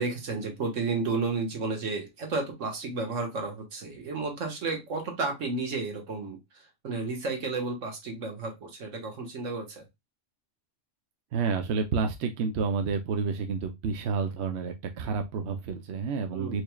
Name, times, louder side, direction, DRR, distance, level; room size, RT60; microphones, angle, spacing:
voice 1, 0.0-6.4 6.8-9.8 16.3-16.6, right 3 dB, 85° right, 1.7 m, -32 dB
voice 2, 11.3-16.6, right 5 dB, 65° right, 0.9 m, -29 dB
4.6 x 3.1 x 2.2 m
omnidirectional pair, 1.3 m